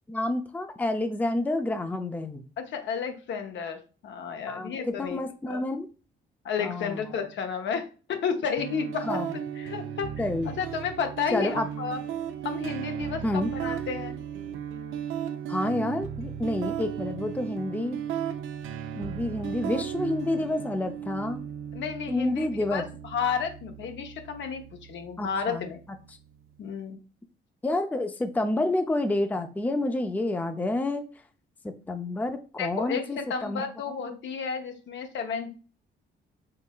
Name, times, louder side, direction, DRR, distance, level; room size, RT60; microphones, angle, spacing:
voice 1, 0.1-2.4 4.5-5.9 6.6-7.0 9.0-9.3 10.2-10.6 11.3-11.7 13.2-13.5 15.5-18.0 18.9-21.4 22.1-22.9 25.2-25.7 27.6-31.0 31.6-33.6 34.0-34.1, left 2 dB, 10° left, 7 dB, 0.4 m, -29 dB
voice 2, 2.6-5.2 5.5-5.6 6.4-10.1 10.5-12.0 12.4-14.2 21.7-22.8 23.1-24.6 24.9-25.8 26.6-27.0 32.6-35.5, left 6 dB, 70° left, 5 dB, 0.8 m, -32 dB
sound 1, 8.6-26.5, right 9 dB, 85° right, 0.5 m, -36 dB
4.1 x 3.8 x 2.3 m, 0.36 s
cardioid pair, 90°, 20 cm